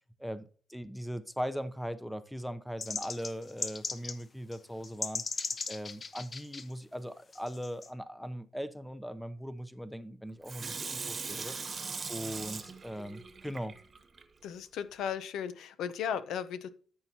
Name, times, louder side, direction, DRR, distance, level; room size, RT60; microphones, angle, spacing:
voice 1, 0.2-5.2 5.7-11.5 12.1-13.8, equal, ahead, 0.7 m, -39 dB
sound 1, 2.8-4.2 4.5-4.6 4.8-6.6 7.3-7.9, left 4 dB, 40° left, 1.0 m, -37 dB
Water tap faucet / Sink (filling or washing), 10.4-14.2 14.7-14.8, right 4 dB, 35° right, 1.1 m, -40 dB
voice 2, 14.4-16.7, left 8 dB, 80° left, 0.8 m, -36 dB
13.5 x 5.7 x 2.8 m
cardioid pair, 90°, 0 cm